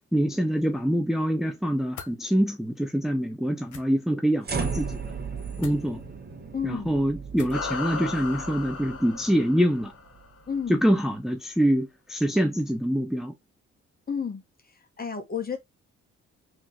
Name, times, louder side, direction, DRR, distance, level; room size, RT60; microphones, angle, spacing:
voice 1, 0.1-5.1 5.6-6.0 6.6-9.9 10.7-13.3, equal, ahead, 0.7 m, -25 dB
sound 1, 1.9-2.2 3.6-3.8 5.6-5.8 7.3-7.7, left 6 dB, 75° left, 1.3 m, -42 dB
sound 2, 4.4-10.7, right 5 dB, 30° right, 1.1 m, -36 dB
voice 2, 6.5-6.9 10.5-10.8 14.1-14.4 15.0-15.6, left 6 dB, 30° left, 1.2 m, -31 dB
sound 3, 7.5-10.3, left 5 dB, 55° left, 1.8 m, -36 dB
3.8 x 3.0 x 3.8 m
cardioid pair, 90°, 30 cm